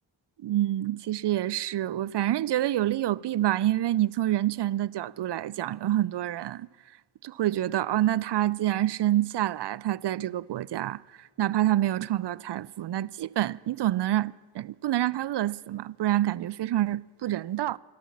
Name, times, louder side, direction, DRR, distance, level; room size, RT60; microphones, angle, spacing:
voice 1, 0.4-6.7 7.2-11.0 11.4-17.8, right 13 dB, 60° right, 0.5 m, -27 dB
14.0 x 12.5 x 7.2 m
cardioid pair, 45°, 49 cm